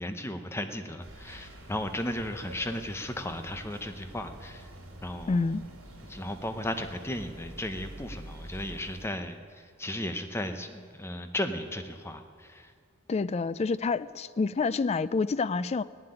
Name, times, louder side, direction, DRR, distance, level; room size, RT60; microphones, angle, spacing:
voice 1, 0.0-4.7 5.0-5.6 6.1-9.4 9.8-12.7, left 1 dB, 10° left, 7 dB, 0.8 m, -35 dB
sound 1, 1.0-9.1, right 1 dB, 80° right, 3.5 m, -47 dB
voice 2, 5.3-5.6 13.1-15.8, left 4 dB, 30° left, 16 dB, 0.3 m, -28 dB
17.0 x 7.7 x 9.9 m, 2.1 s
head